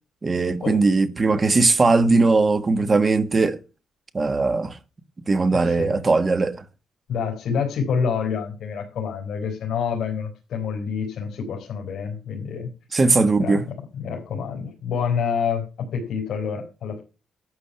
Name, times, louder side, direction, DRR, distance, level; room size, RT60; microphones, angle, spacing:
voice 1, 0.2-3.6 4.1-4.8 5.3-6.6 12.9-13.6, right 3 dB, 25° right, 1.5 m, -19 dB
voice 2, 5.5-6.0 7.1-12.7 13.4-13.6 14.0-17.0, left 6 dB, 60° left, 4.4 m, -27 dB
12.5 x 8.3 x 5.7 m
cardioid pair, 135°, 0 cm